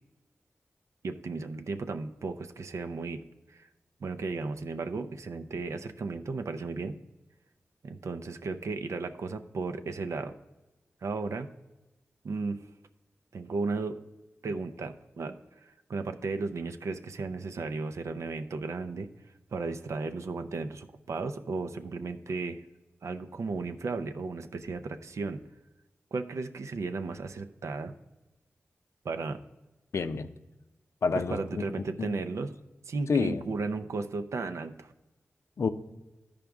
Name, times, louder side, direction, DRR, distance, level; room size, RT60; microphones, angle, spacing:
voice 1, 1.0-3.2 3.5-3.7 4.0-7.0 7.8-10.4 11.0-11.5 12.2-12.6 13.3-14.0 14.4-19.1 19.5-22.6 23.0-25.4 26.1-27.9 29.0-29.4 31.1-32.5 32.9-34.9, right 3 dB, 80° right, 8 dB, 0.5 m, -35 dB
voice 2, 29.9-30.3 31.0-31.4 32.0-32.2 33.1-33.4 35.6-35.7, left 5 dB, 65° left, 11 dB, 0.5 m, -27 dB
13.5 x 5.0 x 3.5 m, 1.1 s
wide cardioid pair, 100°, 5 cm